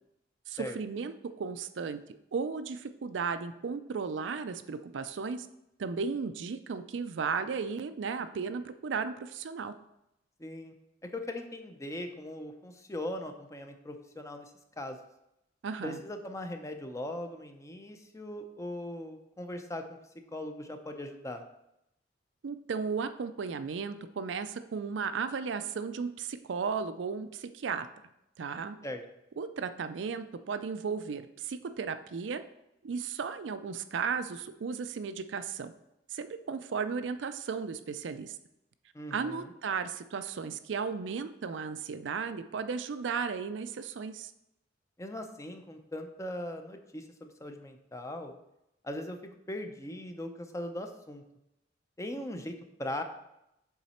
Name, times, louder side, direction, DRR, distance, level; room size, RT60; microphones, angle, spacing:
voice 1, 0.5-2.0 2.3-5.5 5.8-9.7 15.6-16.0 22.4-27.9 28.4-28.8 29.4-32.4 32.8-35.7 36.1-38.4 39.1-44.3, right 5 dB, 70° right, 10 dB, 0.4 m, -35 dB
voice 2, 10.4-10.7 11.0-15.0 15.8-19.8 20.3-21.4 28.8-29.0 38.9-39.5 45.0-48.3 48.8-49.2 49.5-51.2 52.0-53.0, left 1 dB, 15° left, 5 dB, 0.6 m, -39 dB
7.3 x 3.9 x 4.2 m, 0.84 s
head